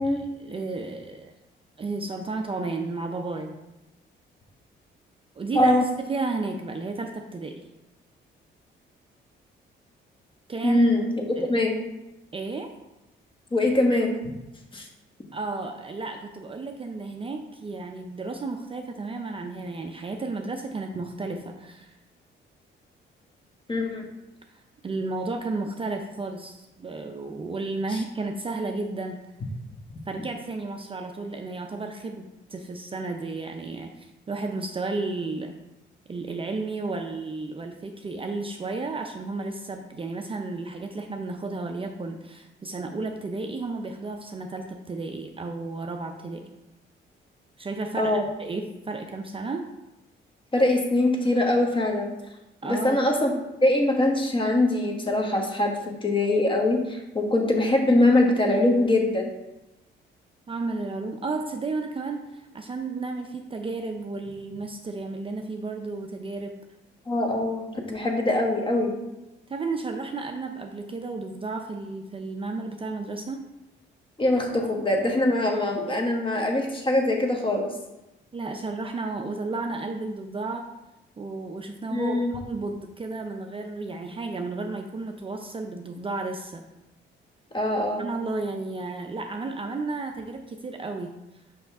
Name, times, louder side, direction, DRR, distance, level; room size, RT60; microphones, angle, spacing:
voice 1, 0.0-1.3 1.8-3.6 5.4-5.7 6.1-7.6 10.5-10.8 11.4-11.5 12.3-12.7 15.3-21.9 24.8-29.2 30.1-35.5 36.1-46.5 47.6-48.1 48.4-49.7 52.6-53.0 60.5-66.6 69.5-73.4 78.3-80.7 81.2-86.6 88.0-91.1, right 3 dB, 25° right, 4 dB, 0.5 m, -33 dB
voice 2, 5.5-5.8 10.6-11.7 13.5-14.1 14.7-14.8 23.7-24.0 27.9-28.0 48.0-48.2 50.5-52.1 52.6-53.3 53.6-55.7 56.0-59.3 67.1-68.9 74.2-77.7 81.9-82.3 87.5-88.0, left 1 dB, 25° left, 1 dB, 1.3 m, -23 dB
5.6 x 5.3 x 3.6 m, 0.96 s
cardioid pair, 90°, 20 cm